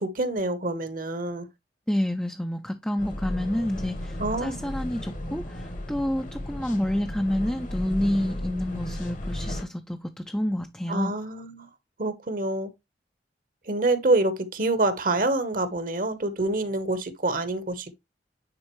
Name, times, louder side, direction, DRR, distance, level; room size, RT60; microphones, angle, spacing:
voice 1, 0.0-1.5 4.2-4.6 10.9-11.7 12.0-12.7 13.7-17.9, right 2 dB, 50° right, 1.0 m, -26 dB
voice 2, 1.9-11.1, left 1 dB, 5° left, 0.4 m, -29 dB
sound 1, 3.0-9.6, left 1 dB, 45° left, 1.1 m, -34 dB
9.7 x 4.0 x 3.0 m
head